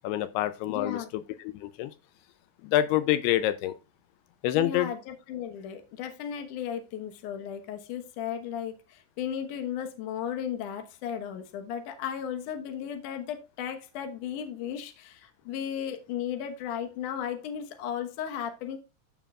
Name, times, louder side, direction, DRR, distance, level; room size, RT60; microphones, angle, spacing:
voice 1, 0.0-1.0 1.4-1.9 2.6-3.7 4.4-4.9, left 12 dB, 85° left, 2.6 m, -26 dB
voice 2, 0.7-1.1 4.5-18.8, left 9 dB, 65° left, 2.4 m, -35 dB
14.0 x 5.7 x 2.4 m
omnidirectional pair, 4.5 m